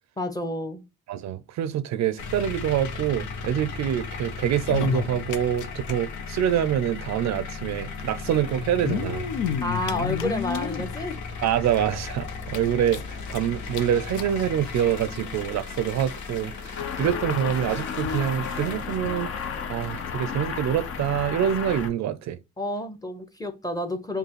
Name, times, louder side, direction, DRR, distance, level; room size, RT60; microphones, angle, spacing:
voice 1, 0.2-0.8 9.6-11.2 22.6-24.2, left 1 dB, 10° left, 0.8 m, -30 dB
voice 2, 1.1-9.3 11.4-13.0 13.3-16.7 17.0-19.3 19.7-22.4, right 10 dB, 65° right, 0.5 m, -26 dB
sound 1, 2.2-21.9, left 4 dB, 70° left, 1.0 m, -36 dB
sound 2, 4.5-5.9 6.2-6.3 6.5-6.6 7.6-7.7 8.6-10.9 11.5-11.6 11.9-12.0 12.4-13.4 13.7-13.8 14.1-14.3 15.1-15.2, left 9 dB, 90° left, 0.6 m, -30 dB
sound 3, 16.8-21.9, left 6 dB, 50° left, 0.7 m, -33 dB
5.3 x 2.3 x 3.0 m
cardioid pair, 90°, 30 cm